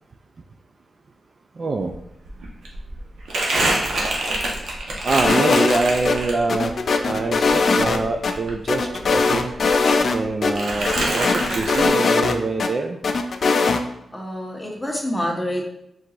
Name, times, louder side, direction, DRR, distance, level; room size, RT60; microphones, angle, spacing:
voice 1, 1.6-1.9 5.0-6.7 7.0-9.5 10.1-13.0, right 3 dB, 45° right, 4 dB, 0.3 m, -25 dB
Crumpling crinkling, 1.9-2.0 2.2-6.7 7.1-9.2 9.5-10.2 10.5-11.9, right 1 dB, 80° right, 0.9 m, -26 dB
sound 1, 5.2-6.2 6.5-8.3 8.7-10.2 10.4-10.5 10.9-12.7 13.0-13.8, left 4 dB, 55° left, 0.4 m, -20 dB
voice 2, 14.1-15.7, equal, 10° left, -1 dB, 0.9 m, -27 dB
4.5 x 3.8 x 2.5 m, 0.79 s
wide cardioid pair, 110°, 0 cm